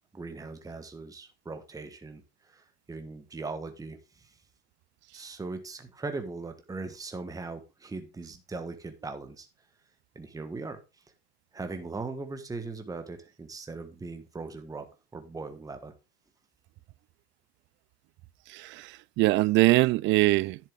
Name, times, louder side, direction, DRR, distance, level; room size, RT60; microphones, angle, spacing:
voice 1, 0.1-4.3 5.1-9.5 10.1-10.8 11.5-15.9, right 3 dB, 10° right, 1.3 m, -39 dB
voice 2, 18.5-20.6, right 20 dB, 35° right, 0.4 m, -23 dB
10.5 x 7.5 x 3.6 m
hypercardioid pair, 90°, 34 cm